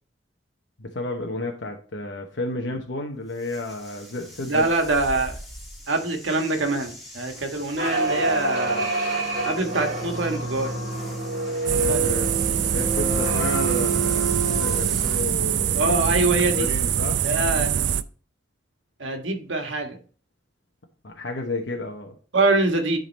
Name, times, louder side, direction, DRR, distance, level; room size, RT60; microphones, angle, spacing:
voice 1, 0.8-4.7 11.7-16.0 16.5-17.2 21.0-22.1, left 2 dB, 70° left, 2 dB, 1.0 m, -31 dB
sound 1, 3.3-15.3, equal, ahead, 2.3 m, -43 dB
voice 2, 4.5-5.4 5.9-8.9 9.4-10.8 11.9-12.1 15.8-16.7 17.2-18.0 19.0-20.0 22.3-23.0, right 2 dB, 85° right, 4 dB, 1.4 m, -24 dB
sound 2, 7.8-16.5, right 2 dB, 50° right, 2.1 m, -28 dB
sound 3, 11.7-18.0, right 9 dB, 65° right, 0.4 m, -24 dB
10.5 x 3.9 x 4.1 m, 0.40 s
head